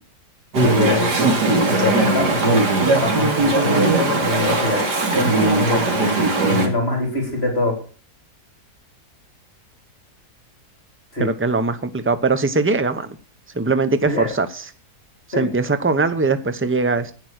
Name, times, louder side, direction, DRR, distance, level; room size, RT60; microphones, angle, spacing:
Chatter / Stream, 0.5-6.7, right 2 dB, 90° right, 3.3 m, -19 dB
voice 1, 0.6-1.5 1.8-2.6 3.0-4.8 5.1-6.0 6.5-7.7 11.1-11.3 14.0-14.3 15.3-15.5, left 3 dB, 40° left, 2 dB, 4.0 m, -24 dB
voice 2, 11.2-13.2 13.5-14.7 15.4-17.1, right 3 dB, 10° right, 11 dB, 0.6 m, -21 dB
11.0 x 9.5 x 6.4 m, 0.40 s
omnidirectional pair, 1.7 m